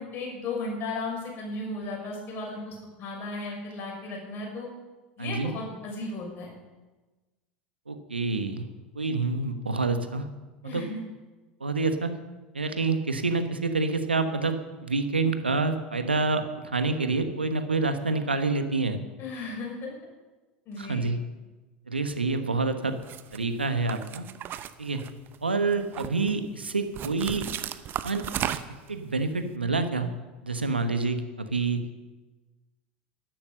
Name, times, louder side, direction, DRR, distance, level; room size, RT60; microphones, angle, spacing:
voice 1, 0.0-4.7 5.2-6.5 10.6-11.0 19.2-19.9 20.7-21.0, left 2 dB, 40° left, 0 dB, 6.5 m, -35 dB
voice 2, 5.2-5.5 7.9-8.6 8.9-10.2 10.6-10.8 11.6-12.1 12.5-19.0 20.8-21.2 21.9-23.0 23.3-24.2 24.8-25.0 25.4-27.5 28.0-28.6 28.9-30.1 30.4-31.8, right 3 dB, 90° right, 8 dB, 1.3 m, -27 dB
sound 1, 23.0-23.4 23.9-25.4 25.7-26.3 26.9-28.9, right 11 dB, 40° right, 0.9 m, -34 dB
13.0 x 12.0 x 6.7 m, 1.2 s
figure-of-eight pair, 80°, 5 cm